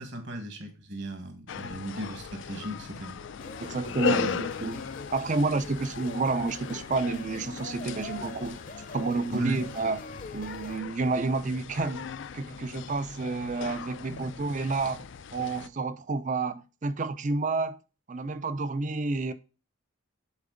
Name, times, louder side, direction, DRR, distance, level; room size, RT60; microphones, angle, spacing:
voice 1, 0.0-3.2 4.1-4.4 9.3-9.6 14.1-14.2, right 1 dB, 55° right, 1.6 m, -37 dB
sound 1, 1.5-15.7, left 6 dB, 60° left, 0.4 m, -38 dB
sound 2, 3.4-10.8, left 3 dB, 40° left, 0.7 m, -44 dB
voice 2, 3.6-4.8 5.1-8.6 8.9-10.0 10.3-12.1 12.3-17.8 18.1-19.3, right 3 dB, 35° right, 0.4 m, -30 dB
7.3 x 4.2 x 3.8 m
head